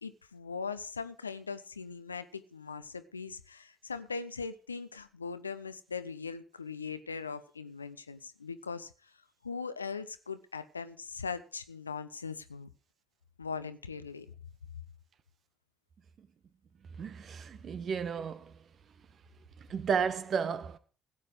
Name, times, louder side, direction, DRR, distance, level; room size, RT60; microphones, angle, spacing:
voice 1, 0.0-9.1 9.4-12.7 13.4-14.3, left 5 dB, 85° left, 0.6 m, -40 dB
voice 2, 17.0-18.5 19.7-20.8, right 6 dB, 50° right, 1.1 m, -33 dB
16.0 x 8.4 x 4.9 m
figure-of-eight pair, 45°, 0 cm